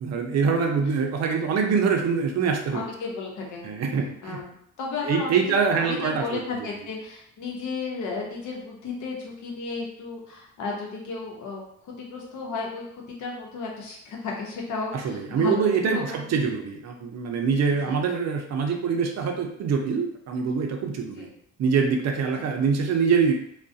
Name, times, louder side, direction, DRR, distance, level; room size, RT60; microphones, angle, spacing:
voice 1, 0.0-2.8 3.6-4.4 5.0-6.4 14.9-21.3 21.6-23.3, right 5 dB, 60° right, 3 dB, 0.5 m, -24 dB
voice 2, 2.7-3.6 4.2-16.4 17.8-18.0 21.2-21.3, left 4 dB, 75° left, -1 dB, 0.8 m, -34 dB
2.3 x 2.1 x 2.6 m, 0.72 s
cardioid pair, 90°, 30 cm